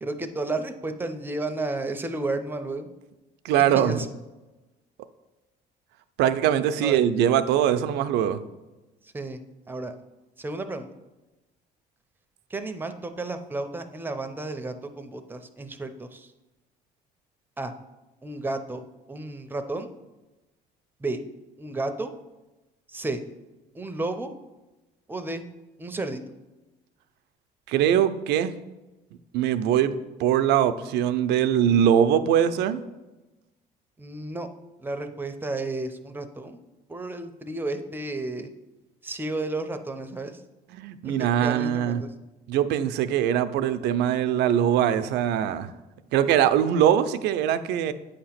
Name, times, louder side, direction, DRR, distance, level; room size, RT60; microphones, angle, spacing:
voice 1, 0.0-2.9 3.6-4.1 6.8-7.0 9.0-9.4 9.7-9.9 10.4-10.9 12.5-16.3 17.6-17.7 18.2-18.8 19.1-19.9 21.0-21.2 21.6-22.1 22.9-23.2 23.7-24.3 25.1-25.5 25.8-26.2 34.0-34.5 34.8-36.6 36.9-38.5 39.0-40.4 41.0-42.1, right 2 dB, 10° right, 7 dB, 0.6 m, -32 dB
voice 2, 3.4-4.0 6.2-8.4 27.7-28.5 29.3-32.8 40.7-42.0 42.5-45.7 46.1-47.9, right 10 dB, 85° right, 12 dB, 0.5 m, -22 dB
8.3 x 2.9 x 5.8 m, 1.1 s
cardioid pair, 110°, 17 cm